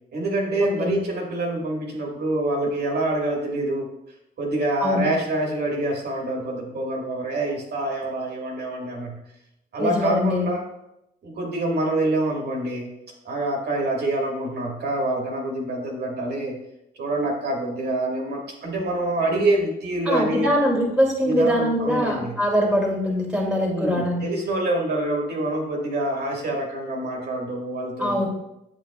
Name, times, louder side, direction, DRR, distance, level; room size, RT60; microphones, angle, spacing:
voice 1, 0.1-3.9 4.4-9.2 9.7-10.6 11.2-12.9 13.3-16.6 17.0-20.5 21.2-22.4 23.6-28.3, right 1 dB, 55° right, -1 dB, 1.8 m, -26 dB
voice 2, 9.8-10.5 20.1-24.2 28.0-28.3, equal, 5° right, -2 dB, 2.2 m, -22 dB
8.1 x 7.5 x 2.3 m, 0.83 s
cardioid pair, 90°, 20 cm